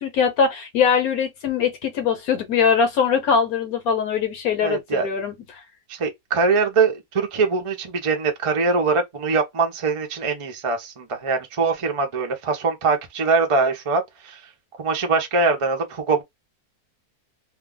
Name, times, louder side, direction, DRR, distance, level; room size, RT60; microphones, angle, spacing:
voice 1, 0.0-5.3, left 6 dB, 70° left, 1.2 m, -21 dB
voice 2, 4.6-5.1 5.9-14.4 14.8-16.2, right 4 dB, 50° right, 0.4 m, -22 dB
2.7 x 2.3 x 3.6 m
omnidirectional pair, 1.7 m